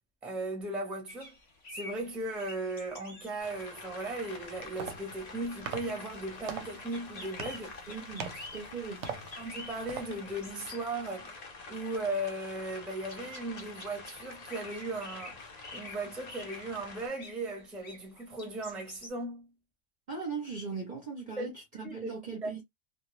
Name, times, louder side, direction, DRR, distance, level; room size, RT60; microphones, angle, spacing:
voice 1, 0.2-1.3 1.7-7.8 9.4-11.4 11.7-15.4 15.7-19.5 21.4-21.5 21.8-22.1 22.4-22.5, right 2 dB, ahead, 0.5 m, -37 dB
sound 1, 1.1-19.1, left 2 dB, 30° left, 0.8 m, -50 dB
sound 2, 3.4-17.1, left 3 dB, 65° left, 0.4 m, -47 dB
sound 3, 4.4-10.5, right 6 dB, 85° right, 1.0 m, -44 dB
voice 2, 7.9-9.1 20.1-22.6, right 5 dB, 50° right, 0.6 m, -39 dB
2.2 x 2.0 x 3.0 m
omnidirectional pair, 1.3 m